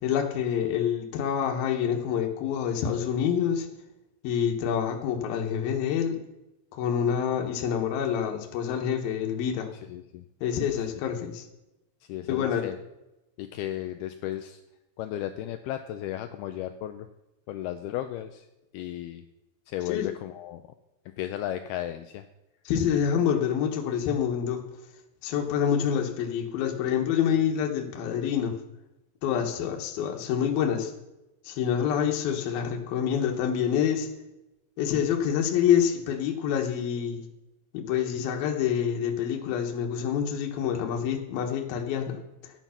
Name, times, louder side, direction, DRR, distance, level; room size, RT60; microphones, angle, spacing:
voice 1, 0.0-3.7 4.2-6.2 6.7-9.7 10.4-11.4 12.3-12.7 19.9-20.1 22.7-24.6 25.2-28.6 29.2-30.9 31.4-34.1 34.8-37.2 37.7-42.5, left 8 dB, 65° left, 2 dB, 2.8 m, -27 dB
voice 2, 9.9-10.3 12.1-12.8 13.4-14.6 15.0-17.1 17.5-18.5 18.7-19.3 19.7-20.6 21.2-22.3, left 12 dB, 85° left, 8 dB, 2.2 m, -34 dB
13.5 x 9.3 x 5.8 m, 0.96 s
omnidirectional pair, 5.1 m